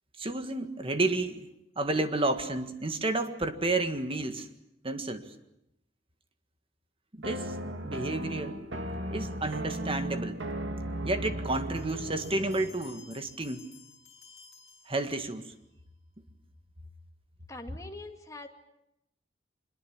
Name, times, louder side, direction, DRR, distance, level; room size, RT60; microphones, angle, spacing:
voice 1, 0.2-1.5 1.8-4.5 4.8-5.3 7.1-7.5 7.8-8.6 9.1-10.4 11.0-13.6 14.9-15.5, right 2 dB, 30° right, 8 dB, 1.8 m, -31 dB
sound 1, 7.2-12.8, right 1 dB, 80° right, 2.4 m, -36 dB
Bell, 11.8-15.5, left 6 dB, 35° left, 6.7 m, -54 dB
voice 2, 17.5-18.5, left 2 dB, 20° left, 3 dB, 2.2 m, -43 dB
25.5 x 22.0 x 8.8 m, 0.84 s
head